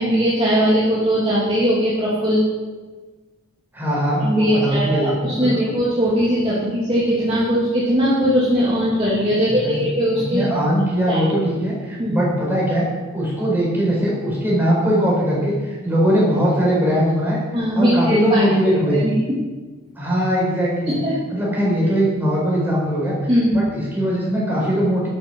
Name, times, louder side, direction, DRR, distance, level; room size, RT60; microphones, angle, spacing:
voice 1, 0.0-2.4 4.2-10.4 11.1-11.2 12.0-12.2 17.5-18.4 18.9-19.2 20.9-21.2 23.3-23.6, equal, 25° right, -9 dB, 2.6 m, -19 dB
voice 2, 3.7-5.3 9.3-12.8 13.1-17.4 17.7-19.0 19.9-21.0 21.3-25.1, equal, 10° right, -5 dB, 4.7 m, -20 dB
12.0 x 8.7 x 6.1 m, 1.3 s
head